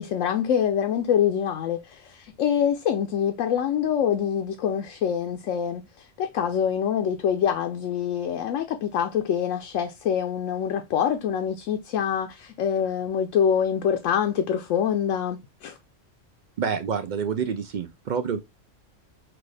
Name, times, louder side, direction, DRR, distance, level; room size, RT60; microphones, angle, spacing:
voice 1, 0.0-15.8, left 8 dB, 80° left, 1.0 m, -25 dB
voice 2, 16.6-18.4, right 6 dB, 65° right, 0.4 m, -28 dB
5.9 x 2.4 x 3.2 m
omnidirectional pair, 1.3 m